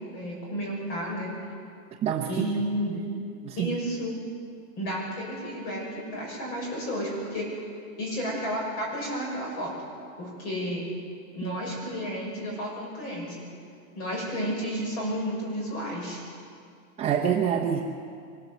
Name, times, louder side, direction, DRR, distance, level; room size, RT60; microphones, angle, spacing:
voice 1, 0.0-1.3 2.3-3.0 3.6-4.1 4.8-7.5 8.0-9.7 10.2-10.8 11.3-13.4 13.9-16.2, equal, 45° left, -2 dB, 6.2 m, -32 dB
voice 2, 17.0-17.8, right 8 dB, 15° right, -1 dB, 0.7 m, -26 dB
23.5 x 14.5 x 7.9 m, 2.3 s
supercardioid pair, 160°, 45 cm